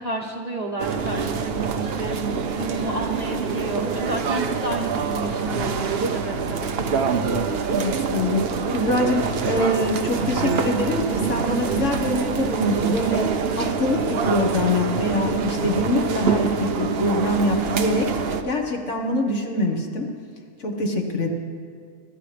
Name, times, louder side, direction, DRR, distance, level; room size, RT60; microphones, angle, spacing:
voice 1, 0.0-6.7, right 1 dB, 30° right, -1 dB, 1.1 m, -31 dB
sound 1, 0.8-18.4, right 5 dB, 50° right, 0.8 m, -25 dB
voice 2, 7.7-8.4 8.7-13.3 13.5-18.2 18.4-20.1 20.6-21.3, left 1 dB, 50° left, 2 dB, 1.6 m, -24 dB
24.5 x 13.0 x 3.4 m, 2.2 s
omnidirectional pair, 1.6 m